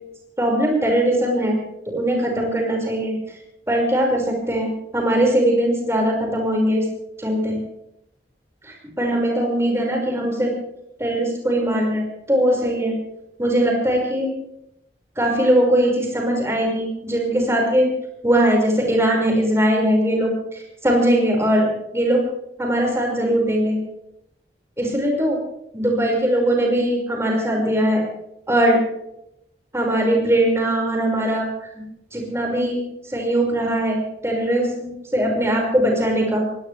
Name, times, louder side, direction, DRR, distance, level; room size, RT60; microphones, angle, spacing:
voice 1, 0.4-1.6 1.9-3.1 3.7-6.9 7.2-7.6 8.6-10.5 11.0-12.9 13.4-14.3 15.2-17.9 18.2-22.2 22.6-23.8 24.8-25.4 25.7-28.0 28.5-28.8 29.7-31.7 32.1-32.8 33.1-36.4, right 1 dB, 15° right, 0 dB, 5.7 m, -20 dB
23.5 x 18.0 x 3.5 m, 0.79 s
head